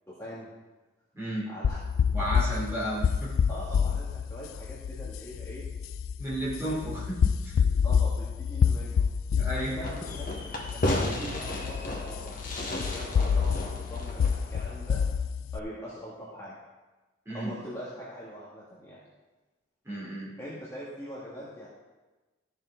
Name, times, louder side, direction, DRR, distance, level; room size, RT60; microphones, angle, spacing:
voice 1, 0.1-0.5 1.5-1.8 2.2-2.7 3.5-5.6 6.6-6.8 7.8-9.1 9.5-15.0 15.5-16.5 17.3-19.0 20.4-21.7, equal, 15° left, -8 dB, 1.6 m, -42 dB
voice 2, 1.2-1.5 2.1-3.3 6.2-7.7 9.4-9.7 17.3-17.5 19.9-20.3, right 1 dB, 15° right, -7 dB, 3.4 m, -33 dB
sound 1, 1.6-15.6, left 6 dB, 90° left, 0.3 m, -28 dB
Fireworks, 9.8-15.1, left 1 dB, 40° left, 1.3 m, -34 dB
13.5 x 6.6 x 3.8 m, 1.2 s
head